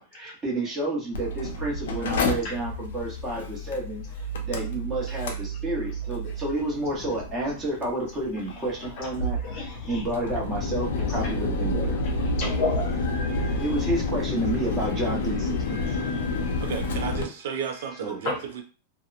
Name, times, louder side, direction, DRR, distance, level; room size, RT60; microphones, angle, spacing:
voice 1, 0.1-4.1 4.4-12.0 13.6-15.9 18.0-18.2, right 1 dB, 15° right, -3 dB, 0.9 m, -30 dB
Mechanical fan, 1.1-17.2, left 2 dB, 90° left, 0.5 m, -30 dB
voice 2, 12.4-13.5 15.9-16.4 18.2-18.4, left 3 dB, 40° left, 2 dB, 0.7 m, -31 dB
voice 3, 16.6-18.6, right 8 dB, 65° right, 6 dB, 0.5 m, -33 dB
2.8 x 2.0 x 2.5 m, 0.34 s
supercardioid pair, 165°, 0 cm